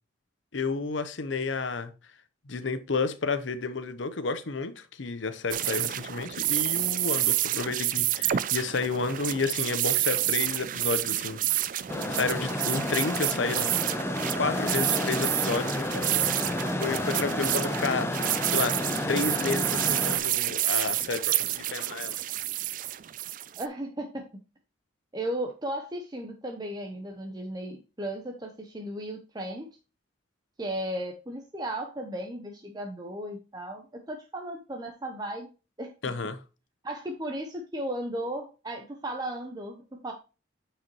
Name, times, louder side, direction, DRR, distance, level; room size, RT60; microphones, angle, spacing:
voice 1, 0.5-1.9 2.5-11.4 12.1-13.8 14.4-16.3 16.8-18.7 19.1-22.2 36.0-36.4, left 4 dB, 70° left, 0.8 m, -31 dB
sound 1, 5.5-23.7, right 13 dB, 40° right, 0.3 m, -29 dB
sound 2, 11.9-20.2, left 1 dB, 15° left, 0.5 m, -31 dB
voice 2, 23.5-24.2 25.1-29.7 30.6-35.5 35.8-35.9 36.8-40.1, right 1 dB, 20° right, 0.7 m, -35 dB
8.9 x 4.9 x 3.0 m
head